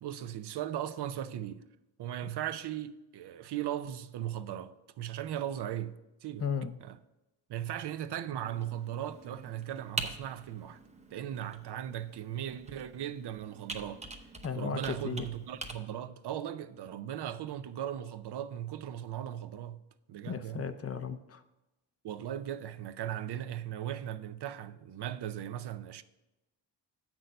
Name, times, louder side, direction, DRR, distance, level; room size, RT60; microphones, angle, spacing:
voice 1, 0.0-1.6 2.0-6.4 6.8-7.0 7.5-10.8 11.1-14.0 14.5-19.8 20.1-20.6 22.0-26.0, right 11 dB, 65° right, 0.6 m, -38 dB
voice 2, 6.4-6.8 14.4-15.3 20.3-21.4, left 6 dB, 35° left, 0.5 m, -35 dB
Computer keyboard, 8.4-15.7, right 2 dB, 15° right, 0.8 m, -44 dB
7.8 x 6.2 x 5.3 m
cardioid pair, 120°, 44 cm